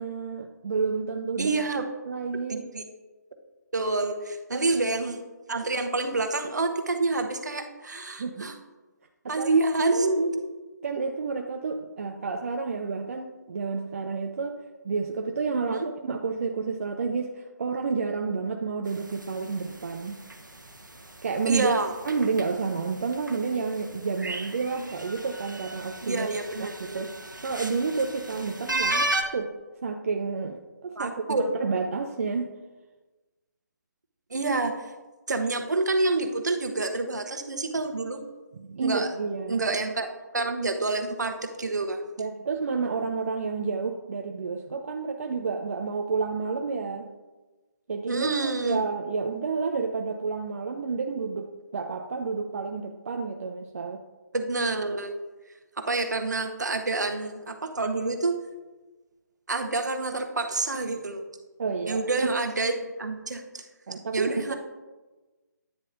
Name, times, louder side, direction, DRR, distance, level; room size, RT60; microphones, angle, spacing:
voice 1, 0.0-1.6 2.1-2.7 4.5-4.6 8.2-8.5 9.2-9.5 10.8-20.2 21.2-21.7 22.1-26.3 26.6-27.1 27.4-29.5 29.8-32.5 38.5-39.6 42.2-47.1 47.9-54.0 61.6-62.3 63.9-64.5, right 4 dB, 45° right, 3 dB, 0.6 m, -30 dB
voice 2, 1.4-1.8 2.5-2.8 3.7-5.2 5.5-8.5 9.3-10.5 15.6-15.9 21.5-21.9 26.0-27.0 31.0-31.5 34.3-34.9 35.3-38.2 38.8-39.1 39.5-40.1 40.3-42.1 48.1-48.8 54.3-55.2 55.8-58.4 59.5-61.2 61.9-62.7 63.0-63.6 64.1-64.5, right 3 dB, 65° right, 5 dB, 1.1 m, -27 dB
sound 1, 18.9-29.2, right 2 dB, 85° right, 1.1 m, -35 dB
10.5 x 9.6 x 2.6 m, 1.2 s
figure-of-eight pair, 145°, 10 cm